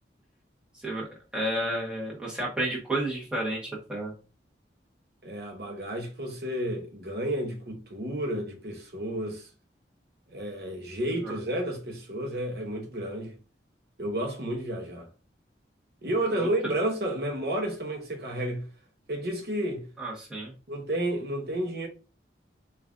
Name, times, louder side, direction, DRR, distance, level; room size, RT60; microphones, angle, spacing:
voice 1, 1.3-4.1 11.2-11.3 16.3-16.5 20.0-20.5, right 1 dB, 5° right, 1.1 m, -31 dB
voice 2, 5.2-9.5 10.3-13.3 14.0-15.1 16.0-18.6 19.1-19.8 20.7-21.9, right 1 dB, 60° right, 0.8 m, -31 dB
5.1 x 2.5 x 2.4 m
head